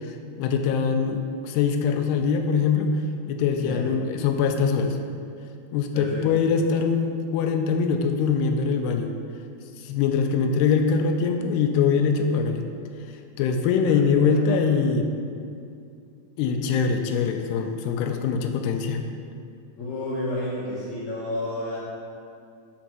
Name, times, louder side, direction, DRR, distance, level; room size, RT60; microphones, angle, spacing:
voice 1, 0.4-2.9 3.3-5.0 5.7-9.1 9.8-12.7 13.4-15.1 16.4-19.1, left 5 dB, 85° left, 5 dB, 2.6 m, -23 dB
voice 2, 5.9-6.3 14.1-14.6 19.8-21.8, left 1 dB, 65° left, -7 dB, 1.9 m, -31 dB
6.2 x 5.2 x 5.9 m, 2.5 s
omnidirectional pair, 4.7 m